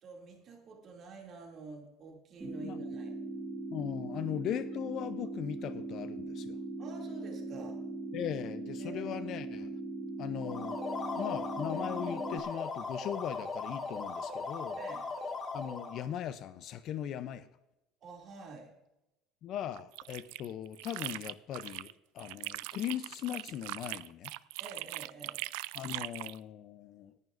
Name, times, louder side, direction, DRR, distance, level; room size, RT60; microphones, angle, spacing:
voice 1, 0.0-3.2 6.8-7.8 8.8-9.2 14.8-15.1 18.0-18.7 24.6-25.4, right 4 dB, 35° right, 1 dB, 2.5 m, -48 dB
sound 1, 2.4-12.4, right 2 dB, 15° right, 1.3 m, -40 dB
voice 2, 3.7-6.6 8.1-9.8 10.2-10.8 11.2-14.8 15.5-17.5 19.4-24.3 25.7-27.1, left 10 dB, 40° left, 13 dB, 0.5 m, -39 dB
sound 2, 10.4-16.1, left 3 dB, 20° left, 1.7 m, -38 dB
sound 3, 19.7-21.9 22.2-26.4, right 21 dB, 75° right, 0.3 m, -41 dB
18.5 x 11.0 x 2.5 m, 0.92 s
cardioid pair, 160°, 0 cm